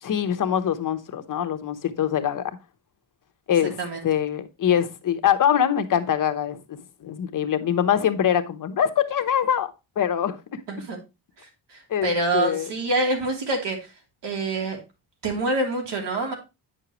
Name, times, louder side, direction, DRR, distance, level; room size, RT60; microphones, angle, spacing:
voice 1, 0.0-2.5 3.5-3.8 4.0-10.6 11.9-12.7, left 9 dB, 50° left, 0.9 m, -24 dB
voice 2, 11.4-13.9 14.2-14.8 15.2-16.3, right 2 dB, 90° right, 3.1 m, -26 dB
9.5 x 6.5 x 3.0 m
wide cardioid pair, 170°, 41 cm